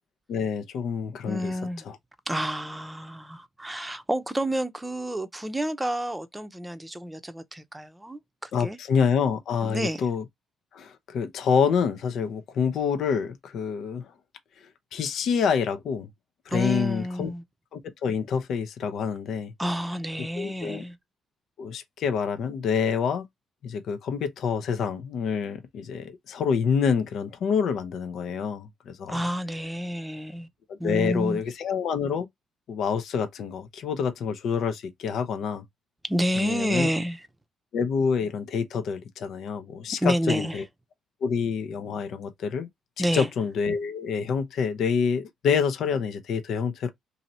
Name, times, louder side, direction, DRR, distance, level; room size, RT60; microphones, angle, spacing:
voice 1, 0.3-1.5 1.9-2.0 8.5-10.2 10.7-14.0 14.9-16.1 16.5-17.3 17.7-19.5 20.4-20.8 21.6-23.2 23.6-29.2 30.7-32.3 32.7-35.6 36.4-36.9 37.7-40.6 41.2-42.7 43.1-46.9, left 6 dB, 70° left, 0.7 m, -27 dB
voice 2, 1.3-1.8 2.3-8.8 9.6-10.0 16.5-17.4 19.6-21.0 29.1-30.5 30.8-31.4 36.0-37.2 40.0-40.6 43.0-43.3, equal, 10° right, 0.7 m, -29 dB
2.9 x 2.7 x 4.2 m
cardioid pair, 90°, 0 cm